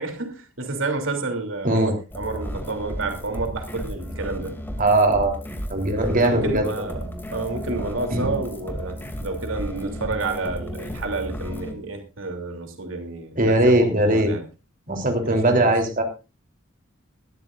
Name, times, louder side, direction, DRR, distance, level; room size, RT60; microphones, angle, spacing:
voice 1, 0.0-4.5 6.1-14.4 15.2-15.7, right 3 dB, 80° right, 5 dB, 3.1 m, -30 dB
sound 1, 2.1-11.7, equal, 10° left, 2.6 m, -33 dB
voice 2, 4.8-5.4 5.7-6.7 8.1-8.4 13.4-14.3 14.9-16.0, right 1 dB, 45° right, 4 dB, 3.5 m, -19 dB
20.5 x 13.5 x 2.6 m, 0.30 s
head